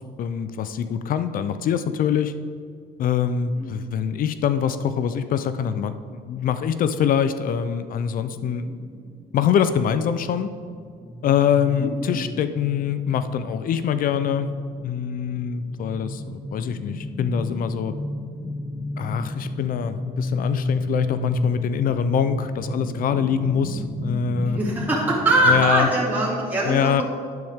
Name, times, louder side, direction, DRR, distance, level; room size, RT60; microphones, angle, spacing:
voice 1, 0.2-2.3 3.0-8.7 9.3-10.5 11.2-14.5 14.8-17.9 19.0-24.6 25.4-25.9 26.6-27.0, left 8 dB, 55° left, 11 dB, 0.5 m, -24 dB
sound 1, 8.3-25.7, left 1 dB, 5° left, 0.9 m, -33 dB
voice 2, 11.8-12.2 24.5-27.0, right 1 dB, 10° right, -6 dB, 2.4 m, -22 dB
12.0 x 9.4 x 3.6 m, 2.1 s
cardioid pair, 110°, 17 cm